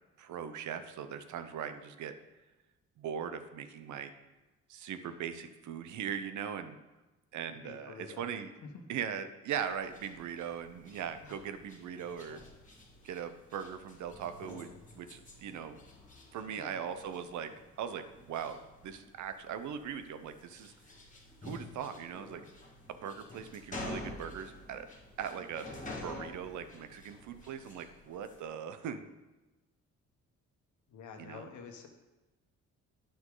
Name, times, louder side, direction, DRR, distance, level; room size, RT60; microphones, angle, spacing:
voice 1, 0.2-2.1 3.0-4.1 4.7-6.8 7.3-8.5 8.9-12.4 13.0-15.8 16.3-17.5 17.8-20.7 21.4-22.4 23.0-24.9 25.2-25.7 26.0-29.0 31.2-31.5, right 8 dB, 75° right, 10 dB, 0.7 m, -40 dB
voice 2, 7.5-8.2 8.7-8.9 11.2-11.3 16.4-16.8 30.9-31.9, left 6 dB, 75° left, 4 dB, 1.2 m, -49 dB
sound 1, 9.6-28.5, left 2 dB, 25° left, 2.0 m, -49 dB
9.7 x 6.0 x 3.9 m, 1.1 s
cardioid pair, 90°, 30 cm